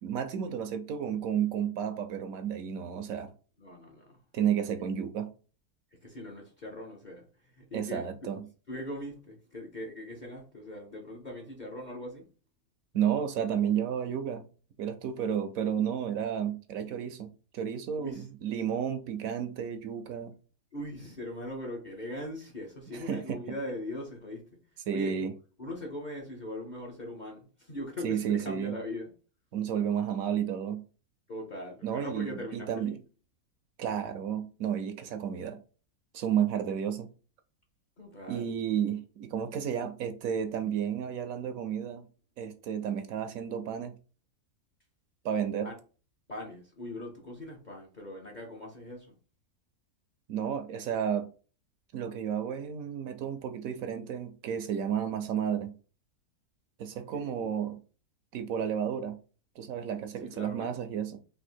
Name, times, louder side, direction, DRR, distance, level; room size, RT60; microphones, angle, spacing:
voice 1, 0.0-3.3 4.3-5.3 7.7-8.5 12.9-14.5 14.8-20.3 22.9-23.4 24.9-25.3 28.0-28.8 29.5-30.8 31.8-33.0 33.8-35.6 36.1-37.1 38.3-42.1 42.4-43.9 45.2-45.7 50.3-51.3 51.9-55.7 56.8-57.8 58.3-59.2 59.6-61.2, right 8 dB, 70° right, 0.9 m, -32 dB
voice 2, 3.6-4.2 6.0-8.3 8.7-12.3 18.0-18.3 20.7-24.6 24.9-25.3 25.6-29.1 31.3-33.0 38.0-38.6 45.6-45.7 46.3-49.2 57.1-57.5 60.2-60.8, left 1 dB, 40° left, 0.7 m, -40 dB
3.5 x 2.7 x 4.3 m
omnidirectional pair, 1.6 m